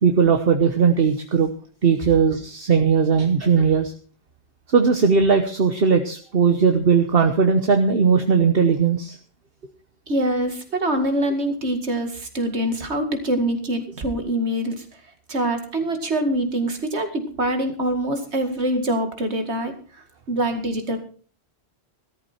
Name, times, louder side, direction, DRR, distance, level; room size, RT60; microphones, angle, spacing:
voice 1, 0.0-1.5 1.8-3.9 4.7-9.2, right 6 dB, 60° right, 6 dB, 1.3 m, -18 dB
voice 2, 10.1-14.8 15.3-19.7 20.3-21.0, right 1 dB, 80° right, 6 dB, 2.4 m, -24 dB
14.5 x 13.0 x 4.3 m, 0.41 s
omnidirectional pair, 1.1 m